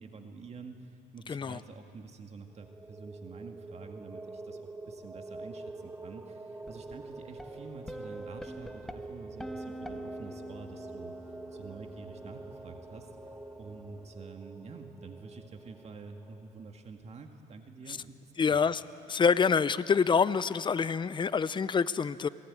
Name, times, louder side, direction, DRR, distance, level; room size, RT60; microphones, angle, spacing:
voice 1, 0.0-11.1 11.5-13.1 13.6-18.6, right 4 dB, 40° right, 5 dB, 2.0 m, -48 dB
voice 2, 1.3-1.6 17.9-18.0 18.4-18.8 19.1-22.3, left 6 dB, 30° left, 15 dB, 0.7 m, -26 dB
sound 1, 2.5-16.8, right 2 dB, 15° right, 1.3 m, -46 dB
sound 2, 6.6-14.2, equal, ahead, 1.4 m, -47 dB
28.0 x 19.0 x 9.8 m, 2.6 s
cardioid pair, 110°, 17 cm